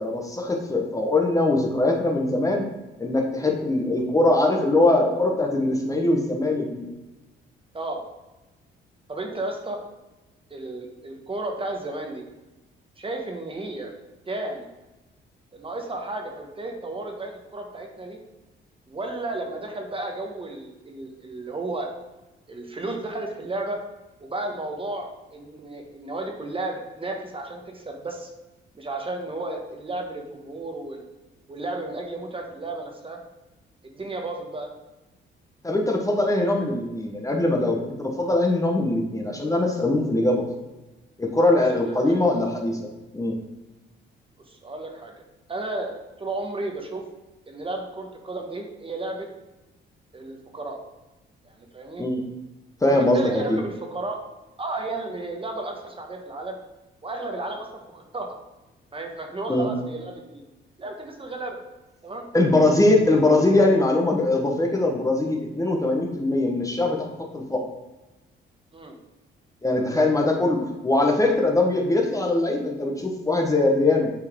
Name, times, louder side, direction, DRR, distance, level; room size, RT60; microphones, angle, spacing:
voice 1, 0.0-2.7 3.0-6.9 35.6-40.5 41.2-42.9 43.1-43.3 52.0-52.2 52.8-53.6 59.5-59.7 62.3-67.7 69.6-74.1, left 2 dB, 15° left, 1 dB, 1.1 m, -22 dB
voice 2, 9.1-9.8 10.5-12.2 13.0-13.9 14.3-14.7 15.5-18.2 18.9-21.9 22.5-23.8 24.2-28.3 28.7-31.1 31.5-33.2 33.8-34.7 41.8-42.2 44.5-45.1 45.5-45.9 46.2-47.0 47.5-49.3 50.1-50.8 51.4-52.0 52.9-54.2 54.6-56.6 57.0-58.3 58.9-60.4 60.8-61.6 62.0-62.3 68.7-69.0, right 2 dB, 25° right, 2 dB, 1.2 m, -33 dB
8.1 x 4.5 x 3.6 m, 1.1 s
cardioid pair, 90°, 20 cm